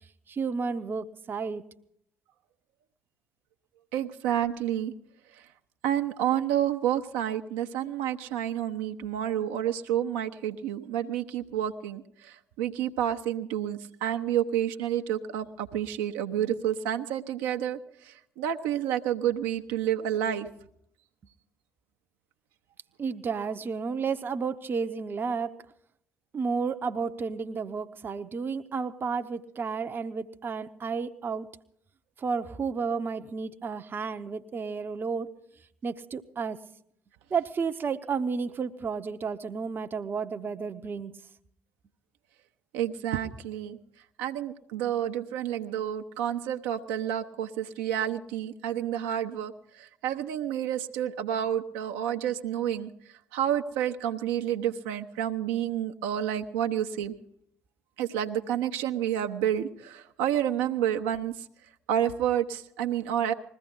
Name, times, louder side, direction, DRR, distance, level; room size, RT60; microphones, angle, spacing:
voice 1, 0.3-1.6 23.0-25.6 26.3-31.5 32.2-35.3 35.8-36.6 37.3-41.1, right 5 dB, 35° right, 8 dB, 0.9 m, -32 dB
voice 2, 3.9-4.9 5.3-5.5 5.8-20.5 42.7-43.8 44.2-57.2 58.0-61.4 61.9-63.3, right 10 dB, 65° right, 5 dB, 0.9 m, -29 dB
21.0 x 15.0 x 3.9 m, 0.71 s
figure-of-eight pair, 50°, 6 cm